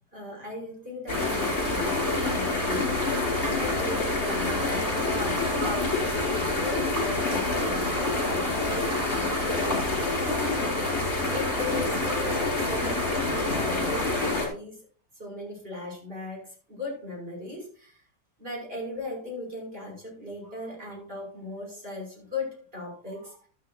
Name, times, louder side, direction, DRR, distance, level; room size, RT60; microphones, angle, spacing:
voice 1, 0.1-10.9 11.3-14.8 15.2-18.0 18.4-23.5, left 2 dB, 35° right, -1 dB, 6.0 m, -38 dB
sound 1, 1.1-14.5, left 2 dB, 40° left, 4.9 m, -27 dB
12.5 x 12.5 x 2.6 m, 0.42 s
omnidirectional pair, 1.8 m